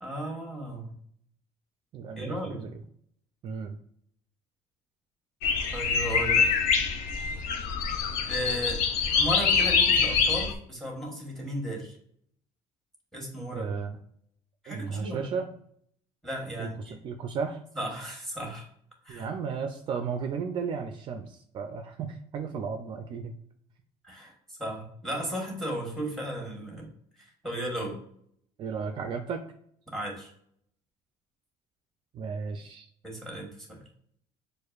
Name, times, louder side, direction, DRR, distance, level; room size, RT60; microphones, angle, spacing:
voice 1, 0.0-0.9 2.2-2.6 5.7-6.5 8.3-8.8 9.1-12.0 13.1-13.7 14.6-15.3 16.2-17.0 17.7-18.7 19.0-19.3 24.0-26.9 27.2-28.0 29.9-30.3 33.0-33.8, equal, 5° left, 0 dB, 1.3 m, -35 dB
voice 2, 1.9-2.8 3.4-3.8 13.5-14.0 14.7-15.5 16.6-17.6 19.1-23.3 28.6-29.5 32.1-32.9, right 6 dB, 45° right, 5 dB, 0.4 m, -34 dB
sound 1, 5.4-10.5, left 5 dB, 90° left, 0.6 m, -25 dB
6.4 x 2.5 x 2.4 m, 0.67 s
cardioid pair, 150°, 12 cm